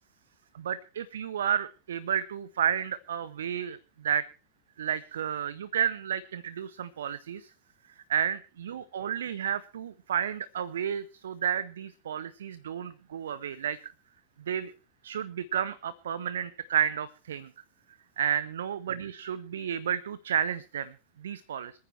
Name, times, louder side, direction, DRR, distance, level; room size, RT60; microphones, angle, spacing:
voice 1, 0.5-3.8 4.0-4.3 4.8-7.5 8.1-13.9 14.5-14.7 15.0-17.5 18.2-20.9 21.2-21.7, right 9 dB, 65° right, 19 dB, 0.6 m, -31 dB
26.5 x 9.5 x 3.1 m, 0.35 s
figure-of-eight pair, 90°, 0 cm